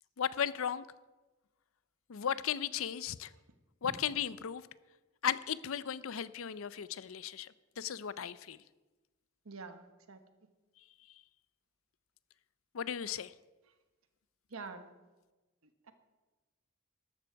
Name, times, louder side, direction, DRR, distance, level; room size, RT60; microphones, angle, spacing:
voice 1, 0.2-0.8 2.1-3.3 3.8-4.6 5.2-7.5 7.8-8.6 12.7-13.3, left 8 dB, 80° left, 17 dB, 0.5 m, -35 dB
voice 2, 9.4-10.2 14.5-14.9 15.9-16.0, right 4 dB, 85° right, 9 dB, 1.2 m, -46 dB
13.5 x 12.0 x 4.6 m, 1.2 s
head